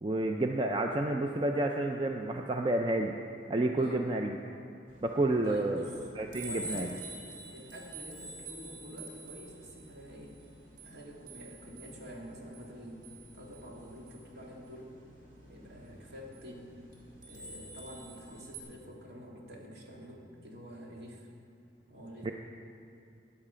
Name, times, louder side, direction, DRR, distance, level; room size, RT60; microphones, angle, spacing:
voice 1, 0.0-3.1 3.5-4.4 5.0-5.8 6.2-6.9 22.2-22.3, right 2 dB, 25° right, 3 dB, 0.4 m, -30 dB
voice 2, 3.7-4.0 5.4-6.0 6.3-6.9 7.5-10.3 10.8-13.0 13.3-14.9 15.5-16.8 17.3-21.3 21.9-22.3, equal, 60° right, -2 dB, 2.3 m, -47 dB
sound 1, 4.9-18.6, right 1 dB, 45° right, 2.2 m, -48 dB
14.0 x 9.7 x 5.0 m, 2.5 s
head